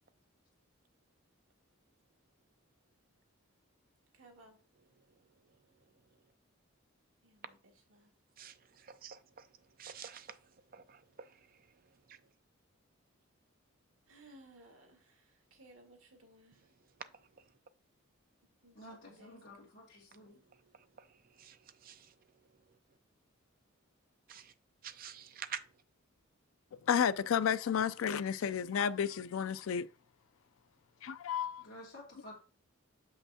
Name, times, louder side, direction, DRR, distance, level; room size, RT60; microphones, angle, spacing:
voice 1, 4.1-4.6 7.2-8.1 14.1-16.7 18.4-19.6, right 1 dB, 80° right, 2.0 m, -60 dB
voice 2, 8.4-9.5 9.8-10.4 10.7-11.3 21.4-21.6 21.8-22.1 24.3-24.5 24.8-25.6, right 8 dB, 40° right, 0.5 m, -47 dB
voice 3, 18.8-20.4 31.6-32.4, left 1 dB, 55° left, 2.0 m, -52 dB
voice 4, 26.8-29.9 31.0-31.6, left 8 dB, 70° left, 0.4 m, -32 dB
6.9 x 5.7 x 2.8 m
head